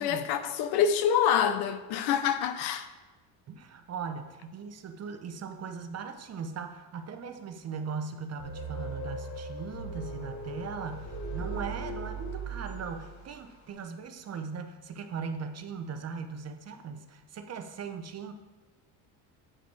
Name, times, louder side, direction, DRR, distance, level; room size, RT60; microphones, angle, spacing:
voice 1, 0.0-2.9, left 8 dB, 70° left, 0.8 m, -26 dB
voice 2, 3.5-18.3, right 5 dB, 40° right, 0.8 m, -39 dB
sound 1, 8.4-13.4, right 2 dB, 45° left, 2.1 m, -38 dB
8.7 x 5.1 x 4.7 m
supercardioid pair, 95°, 41 cm